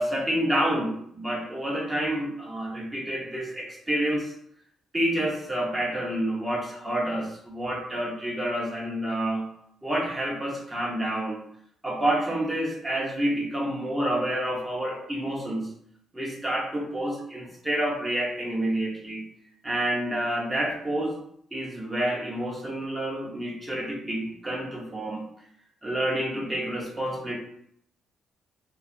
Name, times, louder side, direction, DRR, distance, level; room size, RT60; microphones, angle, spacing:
voice 1, 0.0-4.3 4.9-9.5 9.8-11.4 11.8-15.7 16.1-19.2 19.6-21.2 21.5-25.2 25.8-27.4, right 1 dB, 15° right, -3 dB, 0.8 m, -28 dB
2.8 x 2.3 x 2.6 m, 0.69 s
cardioid pair, 90°, 0 cm